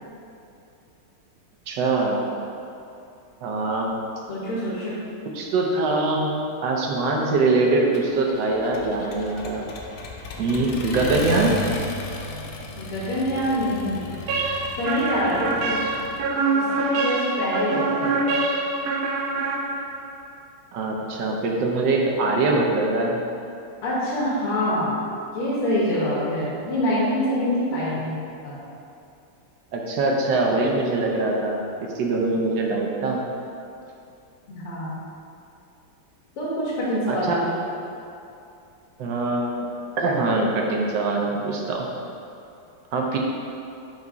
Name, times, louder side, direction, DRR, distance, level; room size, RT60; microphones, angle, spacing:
voice 1, 1.7-2.2 3.4-4.0 5.3-6.3 6.6-9.7 10.4-11.6 20.7-23.2 29.7-33.2 37.1-37.5 39.0-39.7 40.0-41.9 42.9-43.2, right 3 dB, 70° right, 0 dB, 1.2 m, -23 dB
voice 2, 4.3-5.0 12.8-14.1 14.8-15.8 16.5-18.3 23.8-25.0 25.3-28.2 28.4-28.6 34.5-35.0 36.4-37.3, equal, 90° left, -7 dB, 2.1 m, -25 dB
Accelerating revving vroom, 7.9-16.2, left 3 dB, 70° left, 1.0 m, -35 dB
sound 1, 14.3-20.1, right 3 dB, 85° right, 0.8 m, -25 dB
4.9 x 4.1 x 4.7 m, 2.6 s
omnidirectional pair, 2.4 m